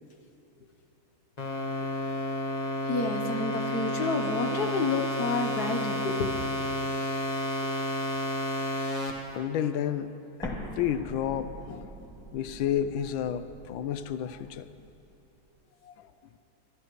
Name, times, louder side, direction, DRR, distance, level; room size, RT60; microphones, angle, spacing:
sound 1, 1.4-9.1, left 1 dB, 25° left, 1.1 m, -31 dB
voice 1, 2.8-6.3, left 3 dB, 60° left, 3 dB, 1.2 m, -29 dB
voice 2, 8.9-10.1 10.4-11.9 12.3-14.7 15.8-15.9, left 9 dB, 80° left, 12 dB, 1.3 m, -31 dB
Explosion, 10.4-15.2, right 1 dB, ahead, 1.6 m, -44 dB
25.5 x 11.5 x 3.1 m, 2.8 s
omnidirectional pair, 2.2 m